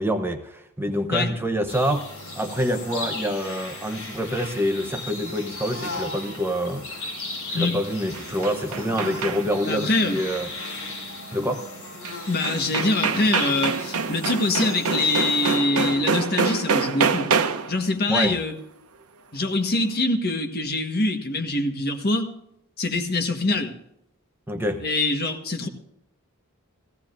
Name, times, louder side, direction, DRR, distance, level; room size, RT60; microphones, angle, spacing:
voice 1, 0.0-7.1 7.5-10.5 11.3-11.7 18.1-18.4 24.5-24.8, equal, 10° right, 5 dB, 0.7 m, -26 dB
sound 1, 1.7-15.6, left 2 dB, 70° left, 5.2 m, -36 dB
sound 2, 7.9-9.7 12.0-12.1 12.4-17.8, right 5 dB, 80° right, 0.8 m, -26 dB
voice 2, 9.6-10.2 12.3-17.3 17.7-18.5 19.3-22.3 22.8-23.8 24.8-25.7, left 2 dB, 45° left, 5 dB, 1.4 m, -24 dB
16.5 x 16.0 x 2.6 m, 0.79 s
head